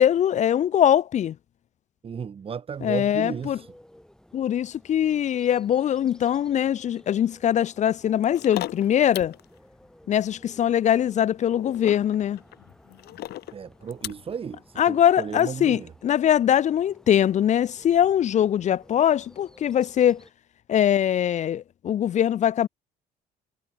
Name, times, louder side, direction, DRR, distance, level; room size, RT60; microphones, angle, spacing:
voice 1, 0.0-1.4 2.8-3.6 4.3-9.4 10.1-12.4 14.8-20.2 20.7-22.7, left 10 dB, 45° left, 0.5 m, -22 dB
voice 2, 2.0-3.7 13.5-15.9, right 7 dB, 35° right, 1.3 m, -34 dB
Bird, 2.7-20.3, left 1 dB, 5° left, 7.1 m, -55 dB
sound 1, 8.2-9.4 11.5-14.3 15.4-15.5, left 15 dB, 70° left, 1.1 m, -36 dB
cardioid pair, 110°, 17 cm